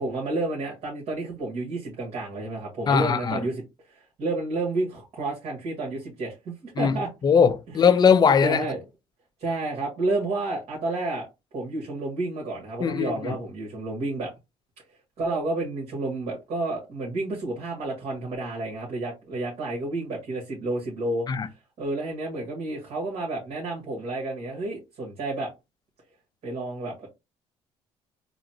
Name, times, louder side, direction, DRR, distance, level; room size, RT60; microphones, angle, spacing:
voice 1, 0.0-7.1 8.4-8.8 9.4-11.3 11.5-14.3 15.2-21.3 21.8-25.5 26.4-27.1, right 2 dB, 60° right, 1.6 m, -30 dB
voice 2, 2.9-3.4 6.8-7.0 7.2-8.7 12.8-13.4 21.3-21.5, left 6 dB, 35° left, 0.5 m, -20 dB
3.9 x 2.1 x 2.8 m
cardioid pair, 90°, 12 cm